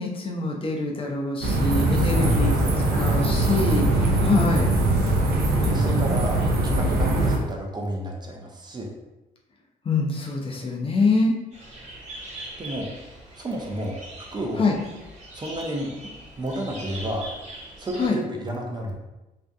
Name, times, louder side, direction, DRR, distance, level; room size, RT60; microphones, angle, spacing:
voice 1, 0.0-4.7 9.8-11.3 14.6-14.8 18.0-18.2, left 3 dB, 35° left, 0 dB, 0.5 m, -25 dB
sound 1, 1.4-7.4, right 2 dB, 70° right, 0.6 m, -21 dB
voice 2, 1.9-2.6 5.6-8.9 12.6-12.9 13.4-14.6 15.3-15.9 16.4-17.3 17.8-18.9, right 1 dB, 25° right, 0 dB, 0.5 m, -31 dB
sound 2, 11.5-18.1, right 1 dB, 45° right, 1.0 m, -41 dB
2.6 x 2.4 x 2.3 m, 1.0 s
cardioid pair, 75°, 16 cm